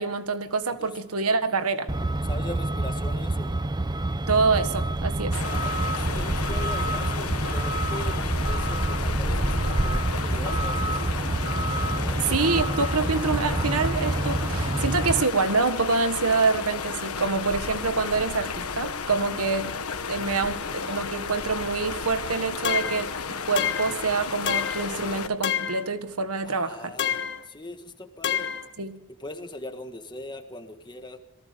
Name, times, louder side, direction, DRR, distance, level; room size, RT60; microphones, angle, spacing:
voice 1, 0.0-1.9 4.3-5.4 12.3-19.7 20.1-27.0 28.8-29.0, right 4 dB, 80° right, 10 dB, 1.6 m, -26 dB
Truck, 1.9-15.2, right 1 dB, 20° right, 0.7 m, -27 dB
voice 2, 2.2-3.5 5.4-11.2 12.0-12.4 26.4-27.2 27.4-28.5 29.2-31.2, left 1 dB, 20° left, 7 dB, 1.6 m, -40 dB
sound 1, 5.3-25.3, left 5 dB, 80° left, 1.4 m, -33 dB
sound 2, 22.6-23.1 23.6-24.0 24.5-24.9 25.4-25.9 27.0-27.4 28.2-28.7, left 8 dB, 55° left, 1.4 m, -28 dB
28.0 x 19.0 x 5.2 m, 1.0 s
head